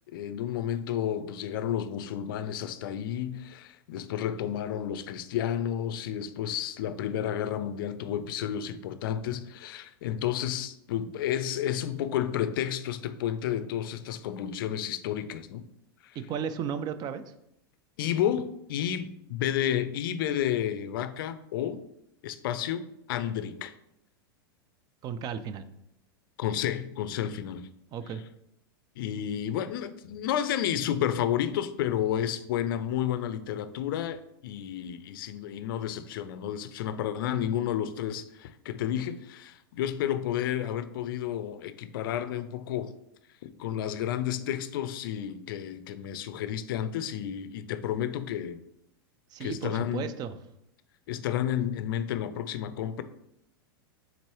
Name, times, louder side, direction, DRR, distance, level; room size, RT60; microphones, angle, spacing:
voice 1, 0.0-15.7 16.0-16.2 18.0-21.8 22.2-23.7 26.4-27.6 29.0-42.9 43.4-48.6 49.4-50.1 51.1-53.0, left 10 dB, 70° left, 0.4 m, -31 dB
voice 2, 16.2-17.2 25.0-25.7 27.9-28.2 49.3-50.4, right 7 dB, 35° right, 0.3 m, -34 dB
4.5 x 3.9 x 3.1 m
hypercardioid pair, 110°, 12 cm